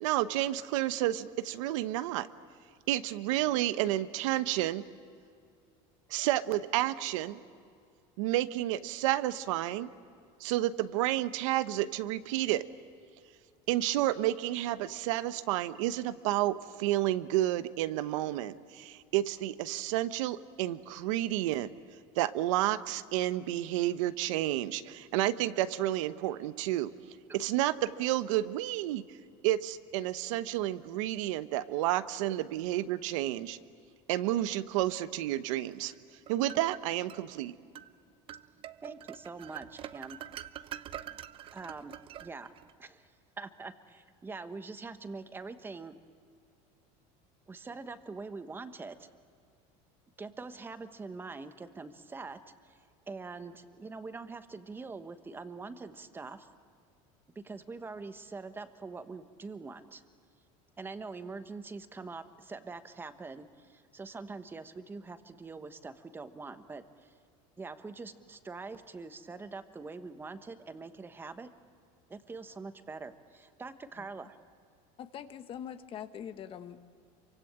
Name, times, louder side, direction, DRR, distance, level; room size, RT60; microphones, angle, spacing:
voice 1, 0.0-2.3 2.9-4.8 6.1-7.4 8.2-9.9 10.4-12.6 13.7-21.7 22.2-26.9 27.3-29.0 29.4-33.6 34.1-35.9 36.3-37.5, right 14 dB, 90° right, 13 dB, 1.0 m, -30 dB
sound 1, 35.9-37.2 37.7-37.9 38.3-42.7, right 11 dB, 35° right, 0.7 m, -45 dB
voice 2, 38.8-40.2 41.5-41.9 42.2-42.5 42.8-43.1 43.4-46.0 47.5-49.1 50.2-52.8 53.1-56.5 57.3-60.0 60.8-67.1 67.6-71.5 72.1-74.4, right 4 dB, 15° right, 10 dB, 1.2 m, -44 dB
voice 3, 75.0-76.9, left 9 dB, 35° left, 10 dB, 1.2 m, -43 dB
27.5 x 24.5 x 8.8 m, 2.3 s
cardioid pair, 150°, 16 cm